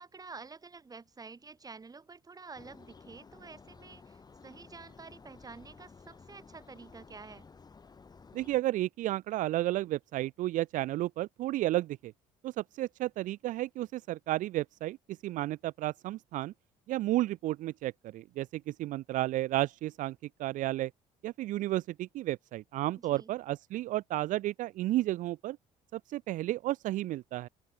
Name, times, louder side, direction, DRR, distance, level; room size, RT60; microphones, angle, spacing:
voice 1, 0.0-7.5 23.0-23.3, right 4 dB, 25° right, 6.5 m, -49 dB
sound 1, 2.5-8.6, left 5 dB, 30° left, 3.4 m, -54 dB
voice 2, 8.3-12.1 12.4-16.5 16.9-20.9 21.2-25.6 25.9-27.5, right 16 dB, 70° right, 0.6 m, -32 dB
open air
cardioid pair, 90°, 14 cm